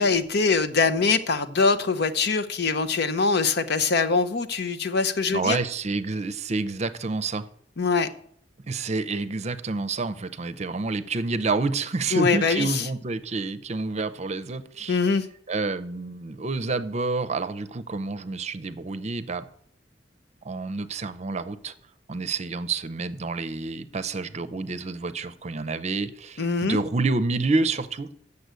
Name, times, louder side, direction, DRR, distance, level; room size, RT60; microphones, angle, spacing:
voice 1, 0.0-5.6 7.8-8.1 12.1-12.8 14.9-15.3 26.4-26.8, left 4 dB, 65° left, 0.8 m, -23 dB
voice 2, 5.3-7.5 8.7-15.0 15.5-19.5 20.4-21.7 22.1-28.1, right 3 dB, 40° right, 0.6 m, -28 dB
7.8 x 6.9 x 8.2 m
head